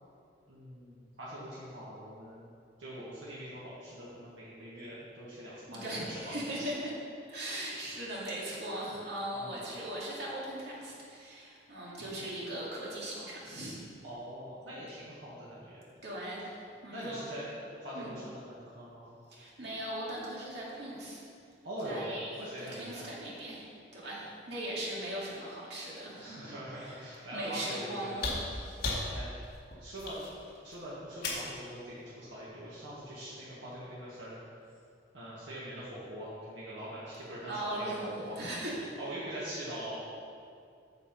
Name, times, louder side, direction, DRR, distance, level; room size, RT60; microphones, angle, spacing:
voice 1, 0.5-2.5 2.8-6.7 9.3-9.6 12.0-12.2 14.0-15.8 16.9-19.1 21.6-22.1 22.4-23.0 26.2-28.3 29.1-29.5 29.8-30.2 30.6-34.4 35.1-38.4 39.0-40.0, equal, 85° right, -8 dB, 1.8 m, -43 dB
voice 2, 5.7-6.9 7.3-13.8 16.0-16.5 16.8-17.2 17.9-18.2 19.3-21.3 21.8-27.0 27.3-28.8 37.5-38.9, right 1 dB, 65° right, -5 dB, 2.5 m, -39 dB
sound 1, 28.2-31.6 33.0-33.1, left 2 dB, 55° left, 1.9 m, -36 dB
8.4 x 6.8 x 5.3 m, 2.4 s
head